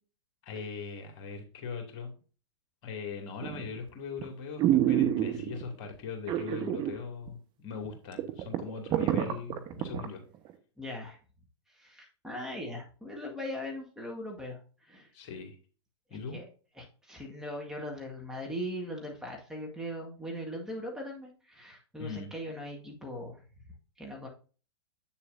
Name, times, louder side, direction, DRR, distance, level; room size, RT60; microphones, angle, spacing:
voice 1, 0.4-2.1 2.8-10.2 15.1-15.5 16.1-16.4 22.0-22.3, left 5 dB, 45° left, 3 dB, 2.4 m, -40 dB
sound 1, 3.4-3.8 4.2-4.3 4.6-5.6 6.3-7.0 7.3-7.4 7.8-7.9 8.2-10.1 10.5-10.6, right 12 dB, 30° right, 1.2 m, -27 dB
voice 2, 10.8-11.2 11.7-15.1 16.3-16.4 16.8-23.4 24.0-24.3, left 1 dB, 5° right, -1 dB, 1.7 m, -40 dB
8.4 x 7.1 x 2.7 m, 0.37 s
figure-of-eight pair, 100°, 15 cm